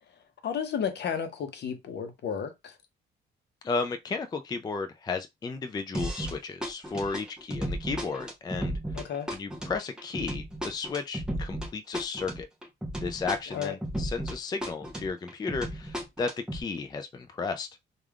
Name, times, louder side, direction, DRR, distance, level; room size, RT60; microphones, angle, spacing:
voice 1, 0.4-2.7 8.9-9.3 13.5-13.7, left 7 dB, 60° left, 0.8 m, -32 dB
voice 2, 3.6-9.0 9.3-12.5 13.0-17.7, left 4 dB, 20° left, 0.4 m, -34 dB
sound 1, 5.9-6.4 6.6-14.4 14.6-16.6, equal, 5° right, 0.9 m, -34 dB
3.3 x 2.4 x 2.3 m
cardioid pair, 90°, 20 cm